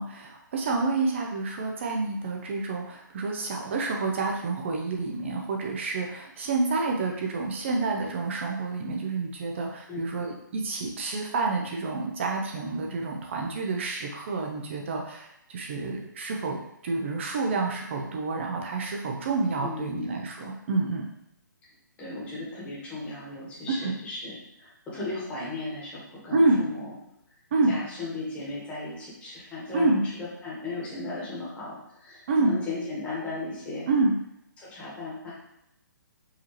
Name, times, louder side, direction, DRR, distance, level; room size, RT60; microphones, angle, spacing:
voice 1, 0.0-21.1 23.7-23.9 26.3-26.6 27.5-27.8 29.7-30.1 32.3-32.5 33.9-34.1, right 3 dB, 35° right, 1 dB, 0.5 m, -28 dB
voice 2, 19.6-20.3 22.0-26.9 27.7-33.9 34.6-35.3, left 3 dB, 10° left, -7 dB, 1.2 m, -36 dB
4.8 x 2.7 x 3.1 m, 0.82 s
hypercardioid pair, 155°, 11 cm